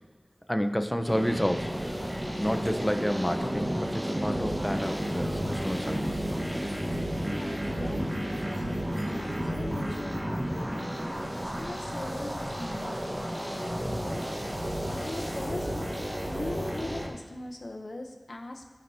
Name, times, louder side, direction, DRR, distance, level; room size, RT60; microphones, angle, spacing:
voice 1, 0.5-1.8 2.3-6.1, equal, 10° left, 7 dB, 0.7 m, -30 dB
sound 1, 1.1-17.1, equal, 30° right, 1.3 m, -32 dB
sound 2, 1.8-10.1, equal, 15° right, 1.3 m, -43 dB
sound 3, 3.2-16.8, right 1 dB, 70° right, 1.8 m, -46 dB
voice 2, 7.2-8.6 8.9-14.5 14.9-16.0 16.2-18.6, left 2 dB, 75° left, 3 dB, 0.6 m, -40 dB
16.5 x 6.0 x 2.7 m, 1.5 s
wide cardioid pair, 45°, 0 cm